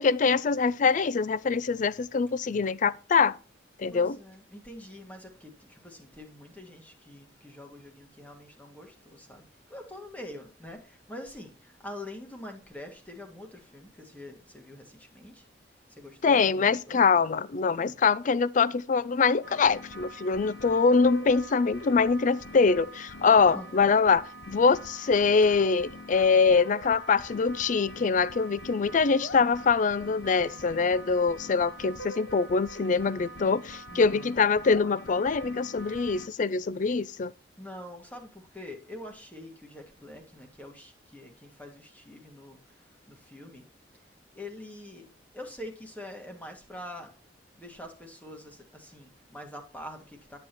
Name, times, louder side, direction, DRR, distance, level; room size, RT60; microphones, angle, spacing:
voice 1, 0.0-3.4 3.8-4.2 16.2-37.3, left 5 dB, 45° left, 0.4 m, -24 dB
voice 2, 3.9-17.1 17.7-18.0 23.2-23.7 30.3-30.8 33.9-34.6 37.6-44.0 44.3-47.1 47.6-50.4, left 1 dB, 10° left, 1.7 m, -45 dB
sound 1, 19.4-36.3, equal, 70° left, 1.1 m, -44 dB
10.5 x 7.2 x 3.0 m
head